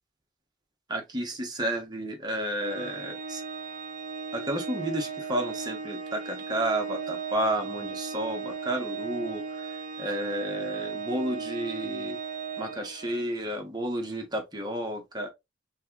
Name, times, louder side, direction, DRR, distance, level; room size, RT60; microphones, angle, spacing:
voice 1, 0.9-3.4 4.3-12.2 12.6-15.3, right 1 dB, 20° right, 1.2 m, -32 dB
Organ, 2.6-13.4, right 5 dB, 45° right, 0.8 m, -36 dB
4.5 x 3.6 x 3.0 m
head